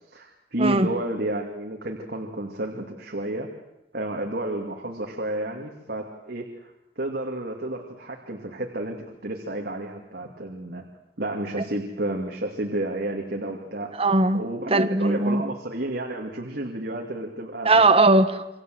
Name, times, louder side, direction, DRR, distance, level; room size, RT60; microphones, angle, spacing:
voice 1, 0.0-3.5 3.9-10.9 11.2-13.9 14.3-17.9, right 1 dB, 65° right, 1 dB, 2.5 m, -31 dB
voice 2, 14.0-14.4 14.7-15.4 17.6-18.6, right 2 dB, 35° right, 7 dB, 1.4 m, -19 dB
28.0 x 24.5 x 7.9 m, 0.91 s
head